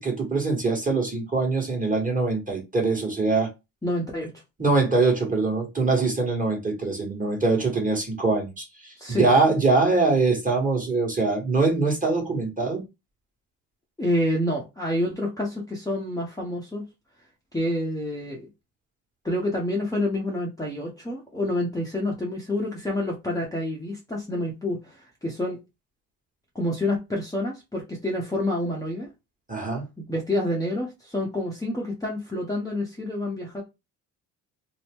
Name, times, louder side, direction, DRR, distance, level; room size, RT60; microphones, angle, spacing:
voice 1, 0.0-3.5 4.6-12.8 29.5-29.9, right 3 dB, 20° right, 1.5 m, -23 dB
voice 2, 3.8-4.3 9.0-9.4 14.0-16.8 17.5-18.5 19.2-25.6 26.5-29.1 30.0-33.6, left 1 dB, 10° left, 0.8 m, -28 dB
2.8 x 2.1 x 3.5 m
cardioid pair, 75°, 39 cm